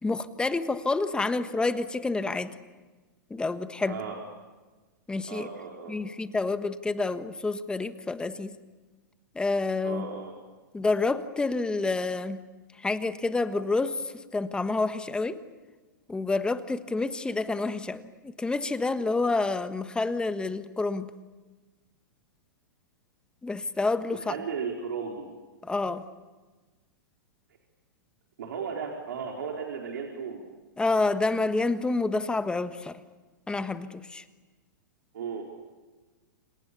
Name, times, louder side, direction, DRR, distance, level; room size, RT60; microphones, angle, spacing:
voice 1, 0.0-2.5 3.3-4.0 5.1-5.5 5.9-8.5 9.3-10.1 10.7-12.4 12.8-15.4 16.1-21.1 23.4-24.3 25.6-26.0 30.8-33.0 33.5-34.2, left 3 dB, 10° left, 10 dB, 1.4 m, -28 dB
voice 2, 3.9-4.2 5.3-6.1 9.8-10.3 24.3-25.3 28.4-30.5 35.1-35.4, right 6 dB, 75° right, 0 dB, 4.6 m, -35 dB
29.5 x 27.5 x 7.0 m, 1.3 s
hypercardioid pair, 125°, 10 cm